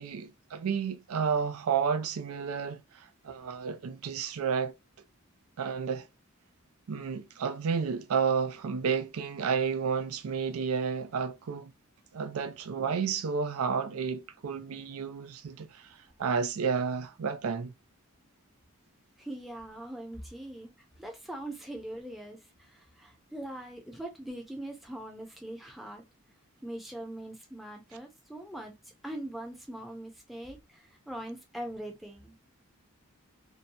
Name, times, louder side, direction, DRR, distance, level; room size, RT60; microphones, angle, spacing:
voice 1, 0.0-4.7 5.6-6.1 6.9-11.7 12.1-17.7, right 6 dB, 85° right, 0.4 m, -31 dB
voice 2, 19.2-20.7 21.0-26.0 26.6-28.8 29.0-32.4, right 1 dB, ahead, 0.6 m, -42 dB
2.7 x 2.2 x 2.6 m
head